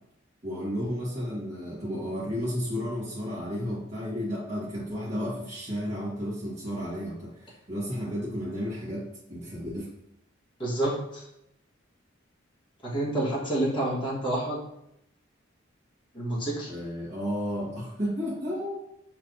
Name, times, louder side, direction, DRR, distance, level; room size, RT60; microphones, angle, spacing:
voice 1, 0.4-9.9 16.7-18.8, equal, 35° right, -9 dB, 1.4 m, -32 dB
voice 2, 10.6-11.2 12.8-14.6 16.1-16.7, right 1 dB, 25° left, -6 dB, 1.3 m, -28 dB
5.3 x 3.2 x 2.6 m, 0.81 s
head